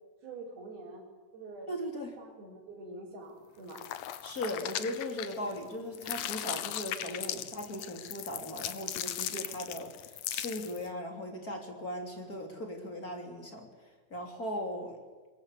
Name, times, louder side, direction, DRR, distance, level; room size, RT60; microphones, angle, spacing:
voice 1, 0.2-1.0 1.3-1.7 2.2-3.8 9.6-9.7, right 2 dB, 65° right, -4 dB, 6.4 m, -46 dB
voice 2, 1.7-2.2 4.2-13.7 14.1-15.0, left 1 dB, 25° left, 3 dB, 3.0 m, -38 dB
sound 1, 3.7-5.6 5.9-10.9, left 12 dB, 90° left, 1.7 m, -38 dB
23.5 x 22.0 x 8.3 m, 1.3 s
omnidirectional pair, 4.8 m